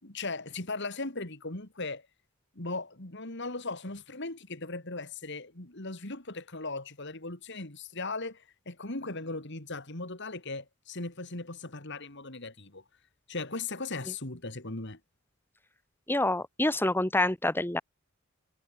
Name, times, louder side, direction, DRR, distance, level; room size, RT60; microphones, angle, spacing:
voice 1, 0.0-2.0 2.5-12.8 13.3-15.0, left 3 dB, 55° left, 3.0 m, -38 dB
voice 2, 16.1-17.8, left 1 dB, 10° left, 1.1 m, -27 dB
head